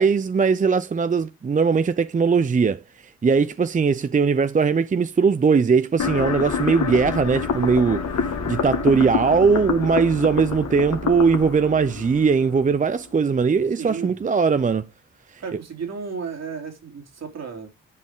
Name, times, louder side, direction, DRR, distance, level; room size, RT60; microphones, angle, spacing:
voice 1, 0.0-14.9 15.3-15.4, right 5 dB, 25° right, 0.6 m, -20 dB
sound 1, 6.0-13.0, left 6 dB, 60° left, 2.1 m, -27 dB
voice 2, 13.8-14.2 15.4-17.7, right 5 dB, 55° right, 3.4 m, -33 dB
10.5 x 5.2 x 3.7 m
supercardioid pair, 50°, 31 cm